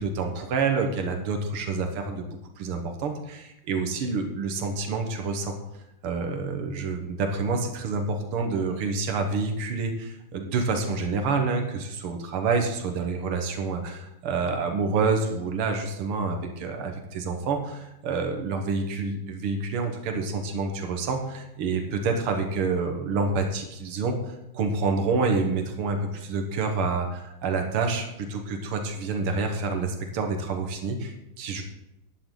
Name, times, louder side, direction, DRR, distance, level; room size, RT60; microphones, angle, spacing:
voice 1, 0.0-2.3 2.6-5.6 6.0-8.0 8.3-31.6, right 4 dB, 80° right, 4 dB, 2.2 m, -28 dB
11.5 x 10.5 x 3.9 m, 0.90 s
omnidirectional pair, 2.4 m